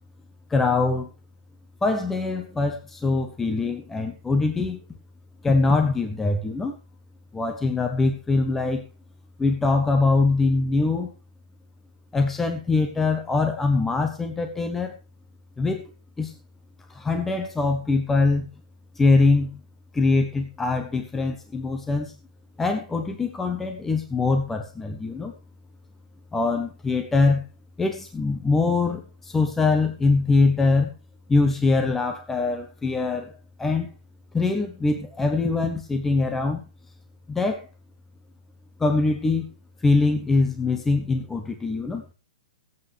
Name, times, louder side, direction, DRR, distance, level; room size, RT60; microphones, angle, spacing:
voice 1, 0.5-1.1 1.8-4.8 5.4-6.8 7.3-8.9 9.4-11.1 12.1-15.0 15.6-15.8 16.2-16.3 16.9-18.5 19.0-19.5 19.9-22.1 22.6-25.3 26.3-27.5 27.8-30.9 31.3-33.3 33.6-33.9 34.3-36.6 37.3-37.6 38.8-39.5 39.8-42.0, left 3 dB, 5° left, 6 dB, 0.9 m, -23 dB
23.5 x 8.2 x 3.2 m, 0.31 s
hypercardioid pair, 165°, 4 cm